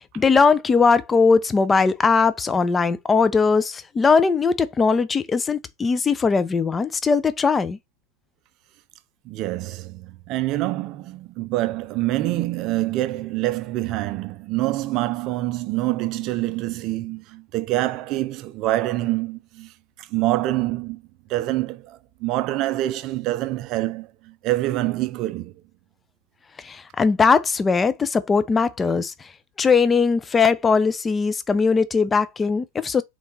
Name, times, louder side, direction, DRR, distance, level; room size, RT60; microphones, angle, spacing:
voice 1, 0.0-7.8 26.6-29.3 29.6-33.0, left 5 dB, 15° left, 0.5 m, -20 dB
voice 2, 9.2-19.7 20.0-21.0 21.3-25.5, right 16 dB, 40° right, 0.5 m, -26 dB
3.8 x 3.1 x 3.1 m
figure-of-eight pair, 90°, 0 cm